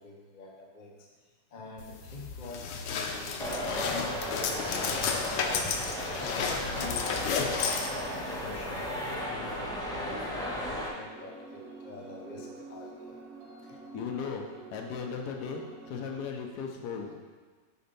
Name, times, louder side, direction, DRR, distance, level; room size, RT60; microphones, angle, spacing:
voice 1, 0.0-6.0 6.3-13.2, left 3 dB, 50° left, 0 dB, 0.6 m, -45 dB
sound 1, 1.8-9.1, left 5 dB, 90° left, 1.3 m, -33 dB
sound 2, 3.4-10.9, equal, 5° left, 0.8 m, -35 dB
sound 3, 11.0-16.2, right 3 dB, 85° right, 2.2 m, -47 dB
voice 2, 13.9-14.5 14.7-17.2, left 6 dB, 70° left, 2 dB, 1.3 m, -36 dB
6.9 x 4.2 x 5.3 m, 1.4 s
omnidirectional pair, 1.9 m